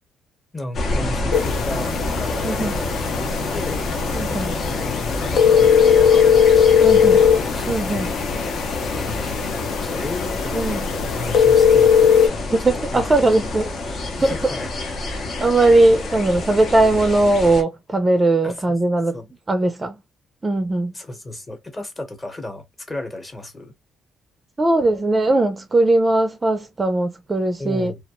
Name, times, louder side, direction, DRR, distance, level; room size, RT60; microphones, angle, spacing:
voice 1, 0.5-3.8 4.2-7.7 8.1-8.3 8.8-10.8 11.1-11.9 12.2-12.4 12.8-13.8 14.2-14.7 15.1-15.3 18.4-18.8 19.1-19.3 20.9-23.7 27.6-28.0, left 1 dB, 25° left, 1.0 m, -35 dB
sound 1, 0.7-17.6, left 2 dB, 55° left, 0.7 m, -27 dB
sound 2, 1.3-12.3, left 7 dB, 85° left, 0.4 m, -19 dB
voice 2, 4.1-4.5 6.8-7.2 7.7-8.1 10.5-10.8 12.5-13.7 14.2-14.3 15.4-19.2 19.5-20.0 20.4-20.9 24.6-27.9, right 2 dB, 25° right, 0.4 m, -19 dB
2.3 x 2.0 x 2.9 m
cardioid pair, 90°, 0 cm